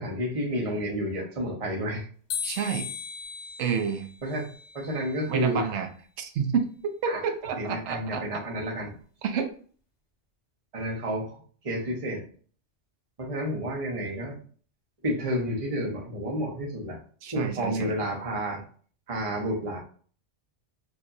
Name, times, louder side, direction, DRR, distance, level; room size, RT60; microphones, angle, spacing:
voice 1, 0.0-2.1 4.2-4.5 4.7-5.7 7.1-7.2 7.6-9.0 10.7-11.4 11.6-12.3 13.2-14.4 15.0-17.0 17.3-18.6 19.1-19.8, equal, 35° right, -1 dB, 0.9 m, -30 dB
sound 1, 2.3-5.4, left 6 dB, 70° left, 1.3 m, -38 dB
voice 2, 2.4-2.9 3.6-4.1 5.3-5.9 6.2-8.2 9.2-9.5 17.2-18.0, right 7 dB, 75° right, 6 dB, 0.9 m, -29 dB
4.5 x 2.7 x 2.6 m, 0.43 s
omnidirectional pair, 1.2 m